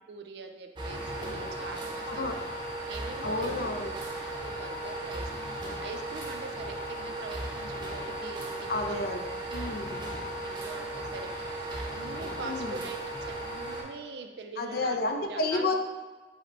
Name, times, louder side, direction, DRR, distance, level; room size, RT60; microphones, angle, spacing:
voice 1, 0.1-2.5 2.9-3.7 4.3-9.2 10.4-13.0 13.3-15.0 15.2-15.7, right 4 dB, 70° right, 5 dB, 0.4 m, -43 dB
sound 1, 0.8-13.8, right 1 dB, 25° right, 0.7 m, -36 dB
voice 2, 3.2-3.9 8.7-10.0 12.4-12.8 14.6-15.7, left 2 dB, 60° left, 5 dB, 0.4 m, -31 dB
4.8 x 2.1 x 4.4 m, 1.3 s
head